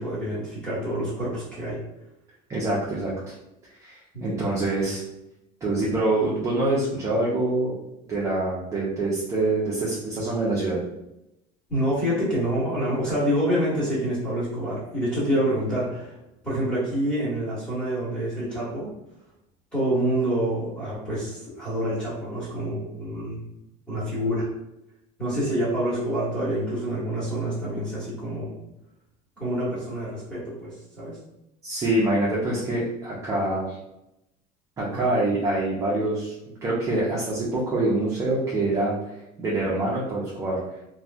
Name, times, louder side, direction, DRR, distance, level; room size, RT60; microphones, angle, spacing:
voice 1, 0.0-1.8 4.1-4.4 11.7-16.2 16.4-18.9 19.7-23.4 23.9-24.5 25.2-28.6 29.4-31.2 34.9-35.1, right 1 dB, 5° left, -9 dB, 1.2 m, -27 dB
voice 2, 2.5-3.3 3.7-5.0 5.6-7.7 8.1-10.8 31.6-33.8 34.8-36.4 36.6-40.6, right 2 dB, 15° right, -7 dB, 0.5 m, -25 dB
3.0 x 2.5 x 2.3 m, 0.87 s
cardioid pair, 170°, 19 cm